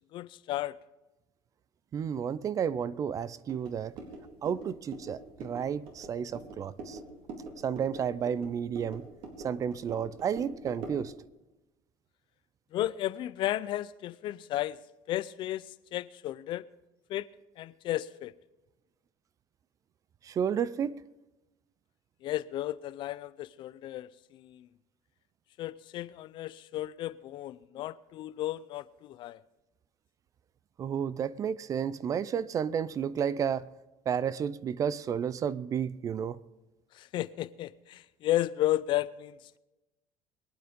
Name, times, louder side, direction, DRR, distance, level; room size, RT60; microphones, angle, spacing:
voice 1, 0.1-0.8 12.7-14.8 15.1-15.7 15.9-16.6 17.1-17.3 17.6-18.3 22.2-24.7 25.6-29.4 36.9-39.6, left 14 dB, 50° left, 0.5 m, -33 dB
voice 2, 1.9-3.9 4.4-7.0 7.6-9.0 9.4-11.1 20.2-20.9 30.8-33.7 34.1-36.4, right 8 dB, 35° right, 0.5 m, -31 dB
sound 1, 3.5-11.1, right 3 dB, 60° right, 4.0 m, -45 dB
22.5 x 9.4 x 5.2 m
cardioid pair, 135°, 10 cm